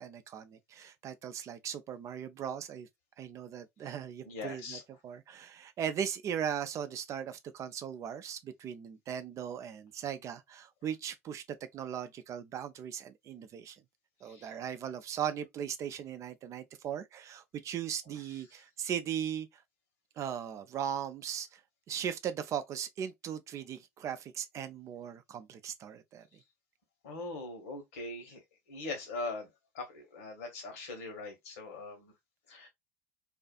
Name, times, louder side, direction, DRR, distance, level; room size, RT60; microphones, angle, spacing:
voice 1, 0.0-2.9 3.2-13.8 14.2-19.5 20.2-21.5 21.9-26.2, right 9 dB, 40° right, 0.5 m, -38 dB
voice 2, 4.2-4.8 14.2-14.5 27.0-28.4 28.7-29.5 29.7-32.1 32.5-32.7, left 3 dB, 70° left, 1.1 m, -41 dB
2.5 x 2.4 x 2.4 m
figure-of-eight pair, 70°, 8 cm